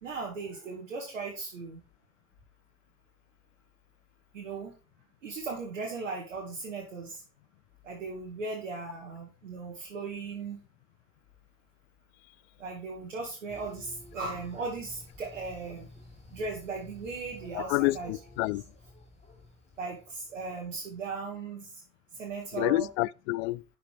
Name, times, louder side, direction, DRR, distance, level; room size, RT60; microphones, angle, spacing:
voice 1, 0.0-1.8 4.3-4.7 5.2-7.2 7.8-10.6 12.6-15.9 16.3-18.1 19.8-21.7 22.2-22.9, right 4 dB, 75° right, 2.4 m, -37 dB
sound 1, 13.5-21.1, left 1 dB, 15° left, 4.0 m, -52 dB
voice 2, 17.5-18.6 22.5-23.6, left 21 dB, 60° left, 0.5 m, -28 dB
11.5 x 5.9 x 4.7 m
figure-of-eight pair, 65°, 37 cm